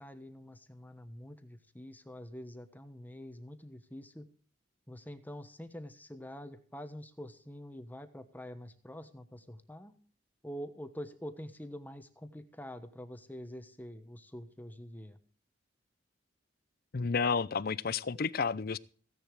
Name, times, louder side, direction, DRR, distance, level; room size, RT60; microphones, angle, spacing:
voice 1, 0.0-4.3 4.9-9.9 10.4-15.2, equal, 10° left, 1.1 m, -46 dB
voice 2, 16.9-18.8, left 5 dB, 55° left, 0.6 m, -31 dB
16.0 x 10.5 x 4.7 m
head